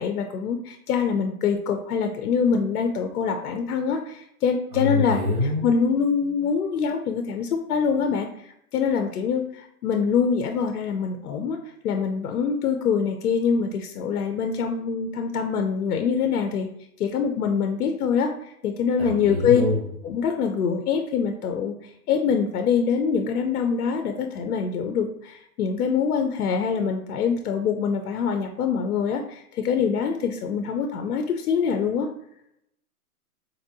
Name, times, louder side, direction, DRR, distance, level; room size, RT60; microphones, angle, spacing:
voice 1, 0.0-5.2 5.6-16.7 17.0-19.6 20.0-32.1, left 6 dB, 75° left, 5 dB, 0.6 m, -24 dB
voice 2, 4.7-5.7 19.0-19.8, left 2 dB, 25° right, -3 dB, 0.4 m, -25 dB
4.1 x 2.7 x 2.6 m, 0.75 s
hypercardioid pair, 160°, 46 cm